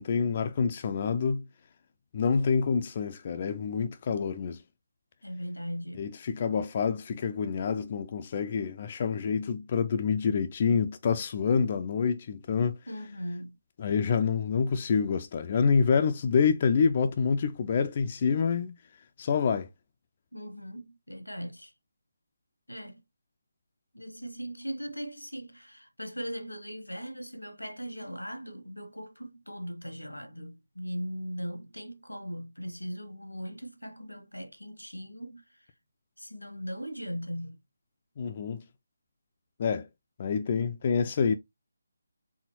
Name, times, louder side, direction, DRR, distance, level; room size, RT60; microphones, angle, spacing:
voice 1, 0.0-1.5 2.1-4.6 6.0-12.8 13.8-18.8 19.2-19.7 38.2-38.6 39.6-39.9 40.2-41.3, left 6 dB, 35° left, 0.4 m, -27 dB
voice 2, 5.2-6.1 12.9-13.5 20.3-21.7 22.7-23.0 23.9-35.7 36.2-37.6, equal, 85° left, 1.0 m, -39 dB
4.2 x 3.6 x 2.9 m
figure-of-eight pair, 150°, 0 cm